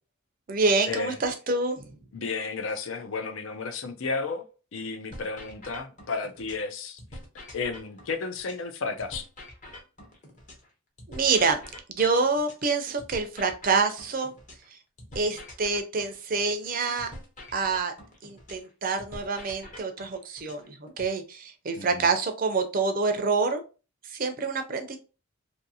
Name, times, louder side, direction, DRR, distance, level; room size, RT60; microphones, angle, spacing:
voice 1, 0.5-1.9 11.1-11.6 11.9-14.3 15.2-17.1 17.5-17.9 18.2-23.6 24.1-25.0, right 4 dB, 40° right, 0.5 m, -27 dB
voice 2, 2.1-4.4 4.7-7.0 7.5-9.3 21.8-22.1, left 4 dB, 65° left, 0.5 m, -32 dB
sound 1, 5.1-6.7 7.0-10.7 11.0-14.7 15.0-18.7 19.0-21.1, left 1 dB, 35° left, 0.8 m, -45 dB
2.6 x 2.6 x 2.7 m
head